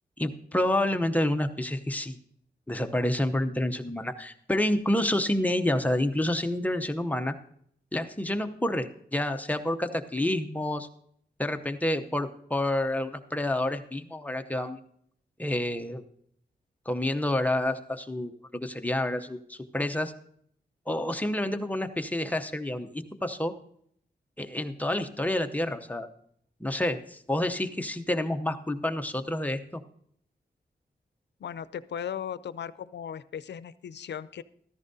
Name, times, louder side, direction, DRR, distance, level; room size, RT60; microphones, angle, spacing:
voice 1, 0.2-2.2 2.7-7.3 7.9-10.9 11.4-14.8 15.4-16.0 16.9-20.1 20.9-23.5 24.4-26.1 26.6-29.8, left 1 dB, 10° left, 7 dB, 0.7 m, -28 dB
voice 2, 31.4-34.4, left 8 dB, 85° left, 15 dB, 0.5 m, -37 dB
14.5 x 13.5 x 2.7 m, 0.66 s
wide cardioid pair, 125°, 18 cm